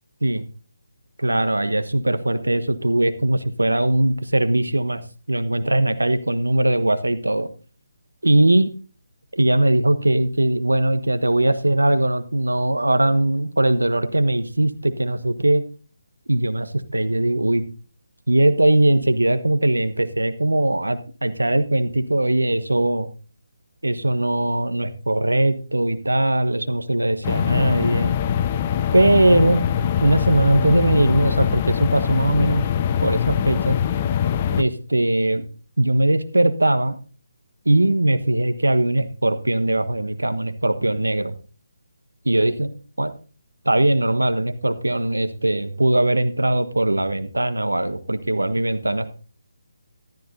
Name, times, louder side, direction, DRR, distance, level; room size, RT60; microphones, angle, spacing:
voice 1, 1.2-5.0 5.3-7.5 8.2-8.7 9.3-15.6 16.3-17.6 18.3-23.1 23.8-28.1 28.9-29.7 30.0-32.6 33.0-33.8 34.6-35.4 35.8-37.0 37.6-41.3 42.2-43.1 43.6-49.1, right 1 dB, 80° right, 10 dB, 1.1 m, -20 dB
sound 1, 27.2-34.6, left 9 dB, 25° left, 0.6 m, -23 dB
14.5 x 12.0 x 2.7 m, 0.37 s
figure-of-eight pair, 150°, 0 cm